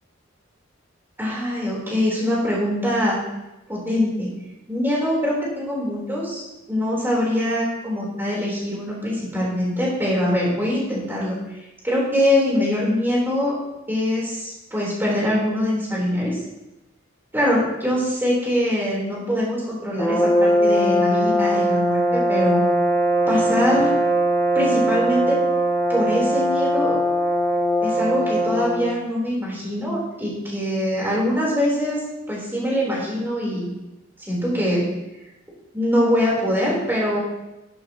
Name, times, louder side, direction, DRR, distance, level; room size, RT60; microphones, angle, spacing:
voice 1, 1.2-3.2 3.7-4.3 4.7-6.4 6.7-11.4 11.8-13.5 13.9-16.4 17.3-22.6 23.3-23.9 24.5-25.4 25.9-27.0 27.8-32.0 32.3-33.7 34.2-34.9 35.7-37.2, equal, 10° right, -5 dB, 4.1 m, -23 dB
sound 1, 20.0-28.9, equal, 15° left, 1.3 m, -20 dB
12.0 x 11.0 x 3.1 m, 0.95 s
head